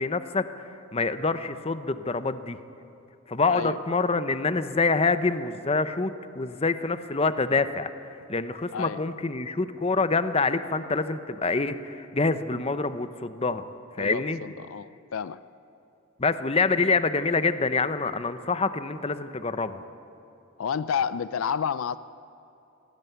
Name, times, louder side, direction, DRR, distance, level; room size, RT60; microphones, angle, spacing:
voice 1, 0.0-2.6 3.3-7.9 8.3-13.6 14.0-14.4 16.2-19.8, left 3 dB, 30° left, 12 dB, 0.7 m, -26 dB
voice 2, 3.5-3.8 8.7-9.0 14.0-15.4 20.6-22.0, left 7 dB, 75° left, 16 dB, 0.4 m, -30 dB
18.5 x 17.0 x 9.2 m, 2.9 s
head